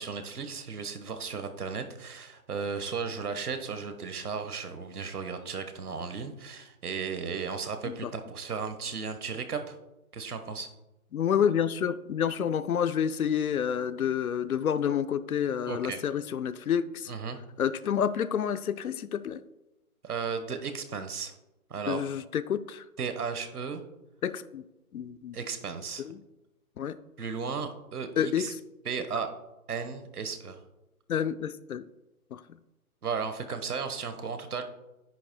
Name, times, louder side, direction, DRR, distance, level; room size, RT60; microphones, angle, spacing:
voice 1, 0.0-9.8 10.1-10.7 15.7-16.0 17.1-17.4 20.0-21.3 21.7-22.0 23.0-23.8 25.3-26.1 27.2-28.5 28.8-29.3 29.7-30.6 33.0-34.6, right 5 dB, 80° right, 8 dB, 1.4 m, -35 dB
voice 2, 11.1-17.1 17.6-19.4 21.9-22.8 24.2-24.6 24.9-25.4 26.0-26.2 26.8-27.0 28.2-28.5 31.1-31.8 32.3-32.4, left 8 dB, 70° left, 14 dB, 0.7 m, -29 dB
10.5 x 10.0 x 2.3 m, 0.96 s
hypercardioid pair, 165°, 45 cm